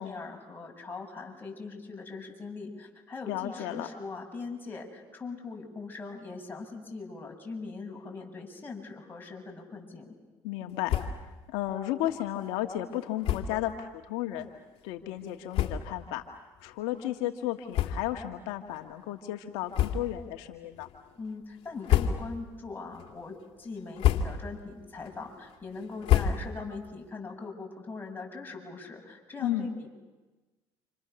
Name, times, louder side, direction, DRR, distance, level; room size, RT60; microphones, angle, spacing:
voice 1, 0.0-10.1 21.2-29.9, left 4 dB, 20° left, 0 dB, 7.6 m, -41 dB
voice 2, 3.3-3.9 10.4-11.0 11.5-14.5 14.8-16.2 16.6-20.9 29.4-29.7, left 13 dB, 85° left, 4 dB, 1.6 m, -33 dB
sound 1, 10.8-11.3 11.7-11.8 12.1-12.2 13.2-13.6 14.4-14.5 15.2-15.3 15.5-16.1 16.6-16.7 17.7-18.4 18.7-18.9 19.7-20.3 20.7-21.2 21.7-22.5 22.9-23.4 23.8-24.6 25.0-26.8, left 10 dB, 65° left, 2.3 m, -29 dB
29.5 x 27.5 x 7.0 m, 1.2 s
supercardioid pair, 85°, 10 cm